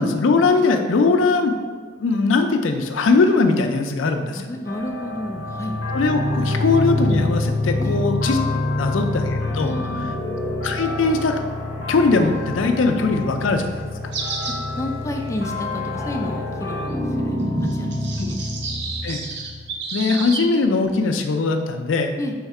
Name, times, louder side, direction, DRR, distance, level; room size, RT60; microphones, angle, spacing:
voice 1, 0.0-1.5 2.0-4.4 5.9-8.4 8.8-9.7 10.6-11.4 11.9-13.7 18.2-18.3 19.0-19.2 19.9-22.1, left 3 dB, 90° left, 5 dB, 0.4 m, -20 dB
voice 2, 4.3-5.7 7.8-8.0 9.4-10.2 14.7-18.4 22.2-22.3, left 1 dB, 15° left, 2 dB, 0.3 m, -31 dB
sound 1, 4.6-16.9, left 3 dB, 65° left, 0.8 m, -34 dB
sound 2, 5.1-19.7, left 1 dB, 15° right, 0.8 m, -27 dB
sound 3, 14.1-14.6 15.1-15.2 16.0-16.2 17.6-20.5, right 4 dB, 65° right, 0.6 m, -31 dB
3.5 x 3.2 x 4.7 m, 1.5 s
head